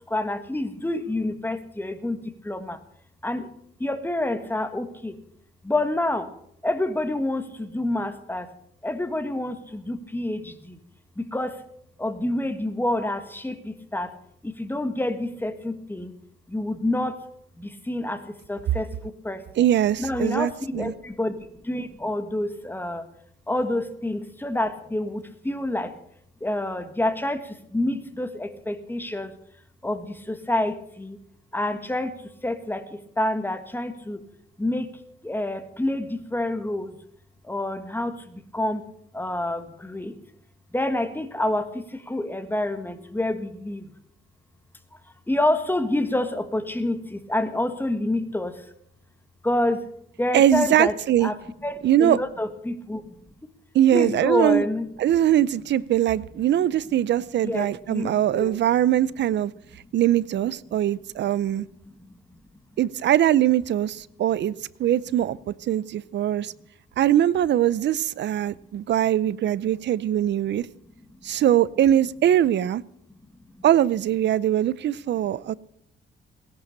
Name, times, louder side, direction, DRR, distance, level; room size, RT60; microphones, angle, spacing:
voice 1, 0.1-2.8 3.2-3.5 3.8-5.2 5.6-6.3 6.6-8.5 8.8-10.8 11.2-11.6 12.0-14.1 14.4-16.1 16.5-17.2 17.6-19.7 20.0-23.1 23.5-25.9 26.4-29.3 29.8-31.2 31.5-34.2 34.6-34.9 35.2-37.0 37.4-38.8 39.1-40.2 40.7-43.9 45.3-48.6 49.4-49.9 50.2-51.0 51.2-51.4 51.6-53.2 53.9-54.9 57.4-58.6, left 1 dB, 10° left, 1.7 m, -28 dB
voice 2, 19.6-20.9 50.3-51.3 51.8-52.2 53.7-54.6 55.0-59.5 59.9-61.7 62.8-64.5 64.8-66.5 67.0-70.7 71.2-72.8 73.6-75.5, right 11 dB, 60° right, 0.6 m, -21 dB
17.5 x 11.0 x 6.7 m
cardioid pair, 90°, 20 cm